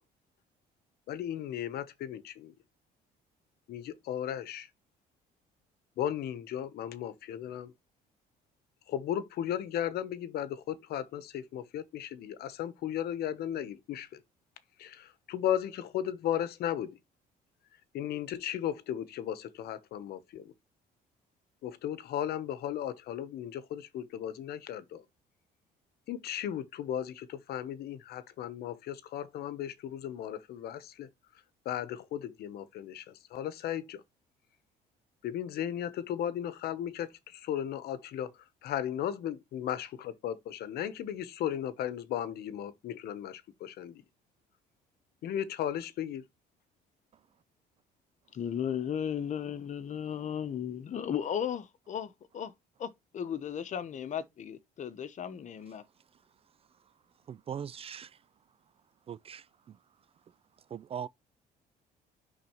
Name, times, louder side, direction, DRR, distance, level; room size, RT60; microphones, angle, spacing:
voice 1, 1.1-2.5 3.7-4.7 6.0-7.7 8.9-14.2 14.8-17.0 17.9-20.5 21.6-25.0 26.1-31.1 31.6-34.0 35.2-44.0 45.2-46.2, left 10 dB, 70° left, 1.0 m, -36 dB
voice 2, 48.3-52.5 52.8-55.8, left 8 dB, 45° left, 1.0 m, -35 dB
voice 3, 57.3-58.1 59.1-59.8 60.7-61.1, right 8 dB, 35° right, 0.4 m, -40 dB
10.0 x 4.1 x 3.0 m
cardioid pair, 110°, 17 cm